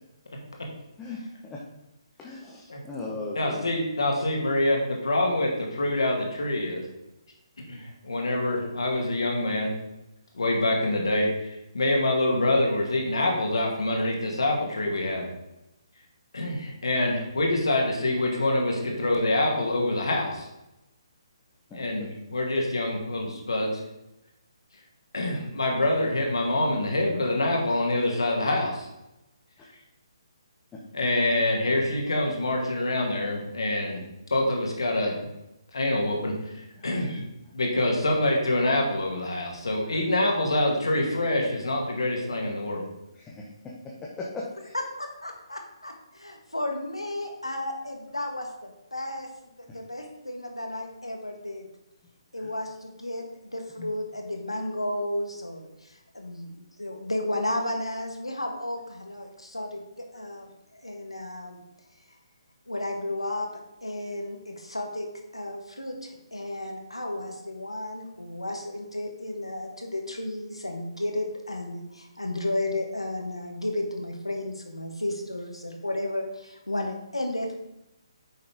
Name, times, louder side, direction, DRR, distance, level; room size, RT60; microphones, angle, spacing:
voice 1, 2.2-4.0 21.7-22.1 36.8-36.9 43.1-43.5 44.2-44.7 52.4-52.5 53.8-53.9, left 3 dB, 10° left, -4 dB, 1.1 m, -38 dB
voice 2, 3.3-6.8 7.7-9.8 10.3-15.3 16.3-20.5 21.7-23.8 25.1-28.9 30.9-34.1 34.3-35.2 35.7-37.2 37.5-42.9, left 1 dB, 60° left, 0 dB, 2.4 m, -26 dB
voice 3, 44.7-49.3 49.6-51.7 52.3-61.6 62.7-63.5 63.8-65.1 65.3-77.5, left 1 dB, 80° left, 3 dB, 1.7 m, -33 dB
9.5 x 6.5 x 3.6 m, 0.91 s
figure-of-eight pair, 140°, 3 cm